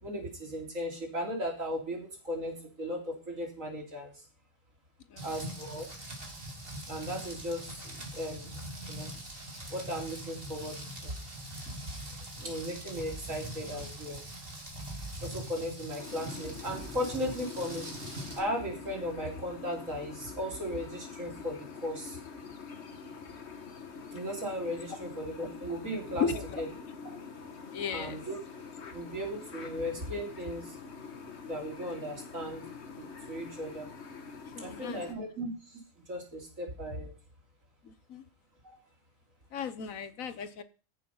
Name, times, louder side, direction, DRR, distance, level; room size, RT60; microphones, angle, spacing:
voice 1, 0.0-4.1 5.2-5.9 6.9-9.1 9.7-10.8 11.0-11.1 12.4-14.2 15.2-17.9 18.4-22.2 24.1-26.7 27.9-28.4 28.9-30.7 31.5-32.6 33.0-33.9 34.6-35.8 36.1-37.1 38.6-38.7, equal, 75° right, 4.0 m, -36 dB
Rain, 5.2-18.4, right 1 dB, 45° right, 2.9 m, -43 dB
sound 1, 16.0-35.1, left 5 dB, 55° left, 1.5 m, -45 dB
voice 2, 26.2-26.6 27.7-28.2 34.5-35.0 37.8-38.2 39.5-40.6, left 6 dB, 80° left, 1.4 m, -35 dB
14.5 x 7.0 x 5.5 m
omnidirectional pair, 1.4 m